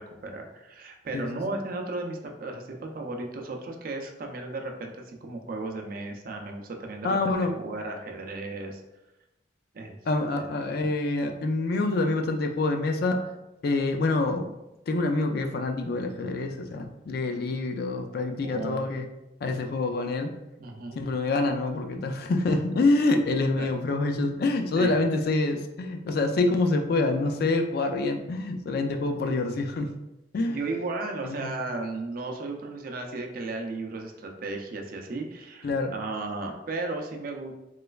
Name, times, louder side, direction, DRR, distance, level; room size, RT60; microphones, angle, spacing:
voice 1, 0.0-7.2 7.6-8.8 9.7-10.0 10.4-10.5 18.4-18.9 20.6-21.0 23.6-23.7 24.8-24.9 30.5-37.5, right 2 dB, 45° right, 3 dB, 0.4 m, -35 dB
voice 2, 7.0-7.5 10.1-13.2 13.6-14.5 14.9-19.1 19.4-20.3 21.0-29.9 30.3-30.6 31.2-31.5 35.6-35.9, left 2 dB, 50° left, 5 dB, 0.3 m, -26 dB
3.2 x 3.1 x 2.3 m, 0.95 s
head